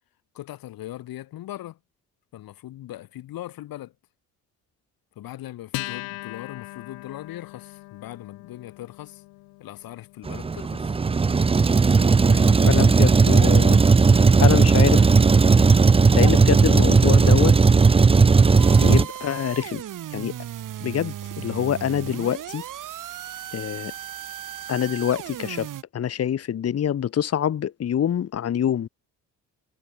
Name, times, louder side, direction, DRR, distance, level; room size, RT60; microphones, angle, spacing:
voice 1, 0.3-1.8 2.3-3.9 5.2-9.2 9.6-11.0 12.3-12.7, left 14 dB, 70° left, 4.1 m, -39 dB
Acoustic guitar, 5.7-12.6, left 24 dB, 90° left, 3.7 m, -40 dB
Truck, 10.3-19.0, right 4 dB, 15° right, 0.6 m, -16 dB
voice 2, 12.7-13.8 14.4-15.1 16.1-17.6 18.8-19.8 20.1-20.3 20.8-22.6 23.5-23.9 24.7-28.9, left 9 dB, 40° left, 1.1 m, -25 dB
sound 1, 18.6-25.8, right 11 dB, 60° right, 2.1 m, -36 dB
supercardioid pair, 75°, 36 cm